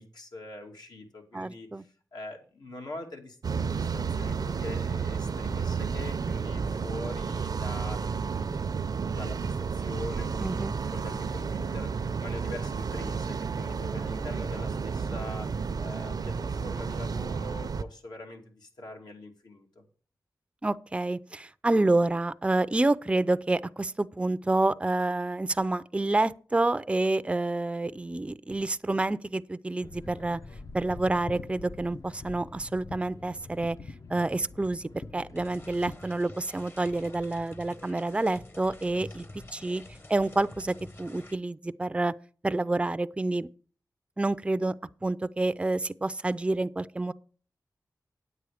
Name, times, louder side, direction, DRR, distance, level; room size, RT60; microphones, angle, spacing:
voice 1, 0.0-3.4 3.8-8.1 8.4-8.6 9.0-10.5 10.9-19.8 38.9-39.0, left 2 dB, 85° left, 2.5 m, -43 dB
voice 2, 1.3-1.8 10.4-10.7 20.6-30.4 30.7-33.8 34.1-39.2 39.5-39.8 40.1-42.1 42.4-43.5 44.2-44.7 45.0-47.1, right 2 dB, 15° right, 0.4 m, -28 dB
sound 1, 3.4-17.8, right 5 dB, 70° right, 0.5 m, -31 dB
sound 2, 29.8-36.0, left 3 dB, 50° left, 0.6 m, -45 dB
sound 3, 35.4-41.4, left 1 dB, 35° left, 1.0 m, -48 dB
9.7 x 8.2 x 4.9 m
wide cardioid pair, 105°, 7 cm